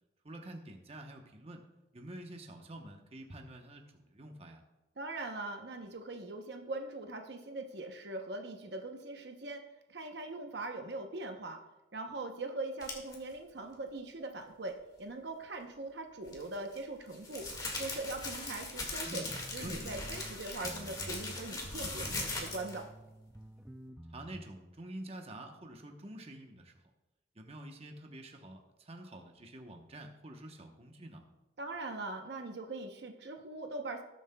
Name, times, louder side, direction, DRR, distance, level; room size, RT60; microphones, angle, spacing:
voice 1, 0.2-1.6 1.9-4.6 19.1-19.9 24.1-26.7 27.3-31.2, right 1 dB, 30° right, 3 dB, 0.9 m, -47 dB
voice 2, 5.0-9.6 9.9-11.6 11.9-17.5 17.8-19.2 19.5-22.9 31.6-34.0, right 2 dB, 60° right, 4 dB, 0.8 m, -41 dB
sound 1, 12.8-13.1 16.2-22.8, left 2 dB, 20° left, 1.8 m, -40 dB
sound 2, 19.0-20.4 20.6-24.4, right 1 dB, 5° right, 0.3 m, -49 dB
19.0 x 7.4 x 2.2 m, 1.1 s
head